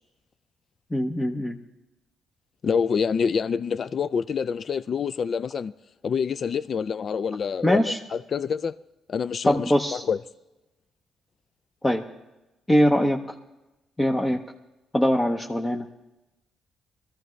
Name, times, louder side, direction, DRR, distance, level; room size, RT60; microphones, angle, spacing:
voice 1, 0.9-1.6 7.6-8.0 9.4-10.0 11.8-12.0 12.7-13.2 14.0-14.4 14.9-15.9, left 1 dB, 15° left, 0.8 m, -22 dB
voice 2, 2.6-5.7 6.0-8.8 9.1-10.2, left 6 dB, 50° left, 0.3 m, -27 dB
21.0 x 14.0 x 3.2 m
cardioid pair, 90°, 0 cm